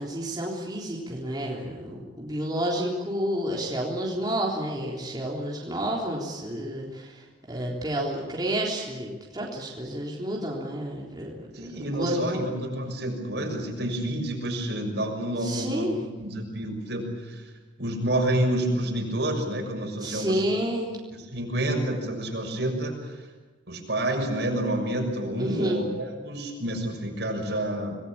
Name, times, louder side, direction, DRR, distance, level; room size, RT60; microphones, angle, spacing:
voice 1, 0.0-7.2 7.5-11.7 12.0-12.5 15.4-16.0 20.0-20.9 25.4-25.8, right 1 dB, 20° right, -3 dB, 3.7 m, -30 dB
voice 2, 11.5-17.5 17.8-20.6 21.3-23.2 23.7-28.0, right 1 dB, 65° right, 2 dB, 6.6 m, -29 dB
26.5 x 20.5 x 8.8 m, 1.3 s
head